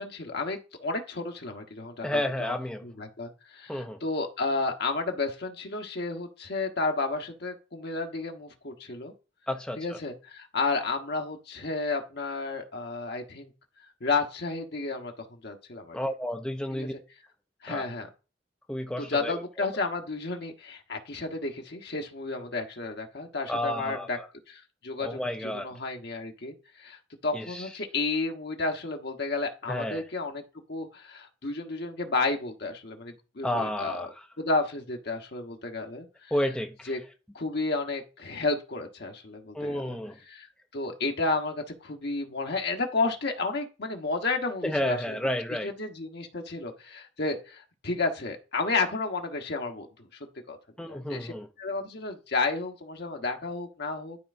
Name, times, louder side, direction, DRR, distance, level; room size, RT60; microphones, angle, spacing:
voice 1, 0.0-2.6 2.8-9.1 9.8-13.5 14.0-16.0 16.7-17.0 17.6-18.1 19.0-24.2 24.5-30.4 30.7-34.1 34.4-36.3 36.8-37.0 37.3-40.5 40.7-45.2 45.6-50.1 50.5-50.6 50.9-54.2, left 3 dB, 60° left, 1.2 m, -32 dB
voice 2, 2.0-2.8 3.7-4.0 9.5-9.8 15.9-16.9 17.7-17.9 18.7-19.4 23.5-24.3 25.0-25.7 27.3-27.6 29.7-30.0 33.4-34.1 36.3-36.9 39.5-40.2 44.6-45.7 50.8-51.5, left 1 dB, 5° left, 0.5 m, -31 dB
11.5 x 4.6 x 2.6 m
head